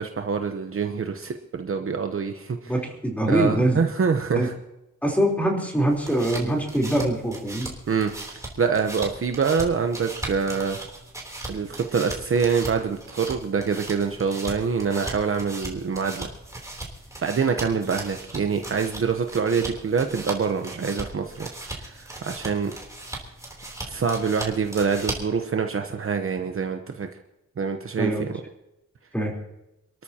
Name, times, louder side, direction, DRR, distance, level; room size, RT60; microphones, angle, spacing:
voice 1, 0.0-2.7 3.3-4.5 7.9-10.8 11.5-16.3 17.2-22.7 23.8-27.1 27.6-28.3, right 5 dB, 45° right, 5 dB, 0.9 m, -25 dB
voice 2, 2.7-3.8 4.3-4.5 5.0-7.7 28.0-28.2 29.1-29.3, right 1 dB, 5° left, -1 dB, 3.7 m, -23 dB
sound 1, 5.8-25.4, right 2 dB, 10° right, 3.3 m, -38 dB
28.0 x 13.5 x 2.9 m, 0.93 s
wide cardioid pair, 170°, 30 cm